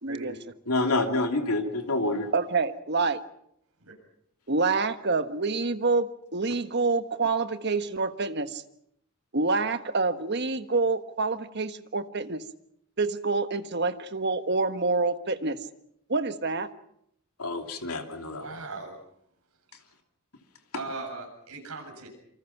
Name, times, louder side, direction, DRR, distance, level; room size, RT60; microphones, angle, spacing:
voice 1, 0.0-0.4 2.3-3.2 4.5-8.6 9.3-12.4 13.0-15.6 16.1-16.7, right 3 dB, 50° right, 10 dB, 1.4 m, -27 dB
voice 2, 0.7-2.3 17.4-18.4, left 2 dB, 90° left, 5 dB, 2.9 m, -27 dB
voice 3, 18.3-19.0 20.7-22.1, right 3 dB, 85° right, 3 dB, 7.7 m, -38 dB
27.0 x 25.0 x 6.0 m, 0.72 s
head